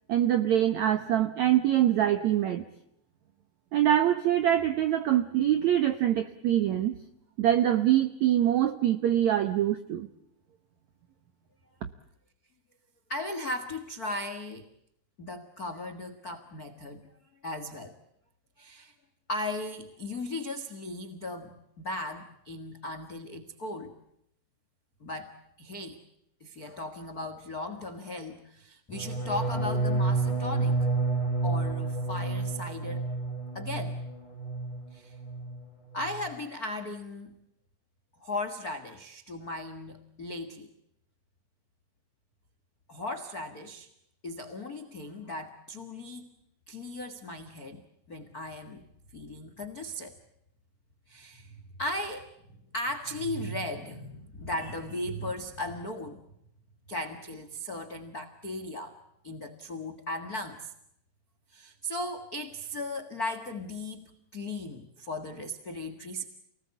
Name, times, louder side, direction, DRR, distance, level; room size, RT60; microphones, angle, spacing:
voice 1, 0.1-2.6 3.7-6.9 7.4-10.1, right 11 dB, 80° right, 10 dB, 1.6 m, -24 dB
voice 2, 13.1-14.7 15.2-17.1 17.4-18.0 18.6-18.9 19.3-23.9 25.0-26.0 26.4-30.9 31.4-33.1 33.5-34.0 34.9-35.2 35.9-37.4 38.2-40.7 42.9-43.9 44.2-46.3 46.7-48.8 49.1-50.2 51.1-56.2 56.9-59.0 59.2-60.7 61.5-66.2, left 1 dB, 80° left, 10 dB, 0.8 m, -37 dB
sound 1, 28.9-34.8 35.1-35.6 35.9-36.3, right 3 dB, 10° left, 3.9 m, -30 dB
29.0 x 19.5 x 8.4 m, 0.76 s
omnidirectional pair, 4.9 m